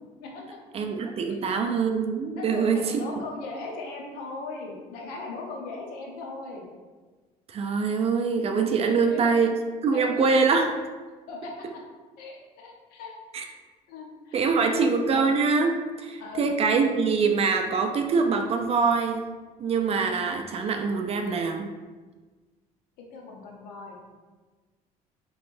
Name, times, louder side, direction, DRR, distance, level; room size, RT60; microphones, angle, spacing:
voice 1, 0.7-3.0 7.5-9.5 9.8-10.7 13.3-13.5 14.3-19.2 19.6-21.7, right 5 dB, 40° right, 4 dB, 0.4 m, -24 dB
voice 2, 2.3-6.6 8.9-9.2 9.9-10.0 11.3-11.5 12.2-13.1 13.9-14.9 16.2-16.5 23.1-24.0, left 3 dB, 85° left, 0 dB, 0.7 m, -38 dB
3.3 x 3.1 x 2.5 m, 1.3 s
cardioid pair, 100°, 15 cm